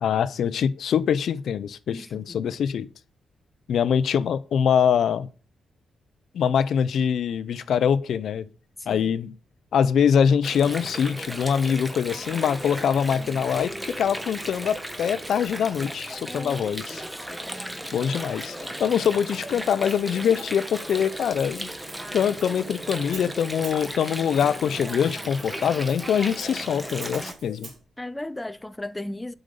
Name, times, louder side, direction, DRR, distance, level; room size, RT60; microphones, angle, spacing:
voice 1, 0.0-2.9 3.7-5.3 6.3-8.5 8.9-9.4 9.7-17.0 17.9-21.7 22.1-27.7, left 8 dB, 70° left, 0.5 m, -24 dB
voice 2, 1.9-2.6 8.8-9.1 16.3-17.4 28.0-29.3, left 1 dB, 10° left, 0.4 m, -37 dB
Water, 10.4-27.3, right 1 dB, 5° right, 1.1 m, -36 dB
Hi-hat, 19.9-27.8, right 5 dB, 65° right, 2.8 m, -48 dB
7.8 x 5.1 x 6.7 m
wide cardioid pair, 135°, 0 cm